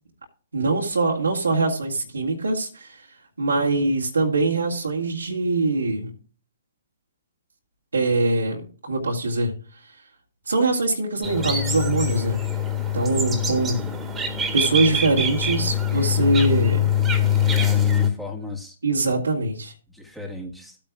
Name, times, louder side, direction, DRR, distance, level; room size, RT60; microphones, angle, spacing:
voice 1, 0.5-3.1 3.4-6.1 7.9-9.5 10.5-12.4 12.9-13.8 14.5-16.9 18.8-19.7, right 2 dB, 85° right, -2 dB, 1.9 m, -23 dB
sound 1, 11.2-18.1, left 6 dB, 15° right, 1.8 m, -23 dB
voice 2, 13.4-14.0 17.4-18.8 19.9-20.8, left 3 dB, ahead, 0 dB, 1.6 m, -37 dB
14.5 x 8.7 x 2.4 m, 0.39 s
figure-of-eight pair, 125°, 0 cm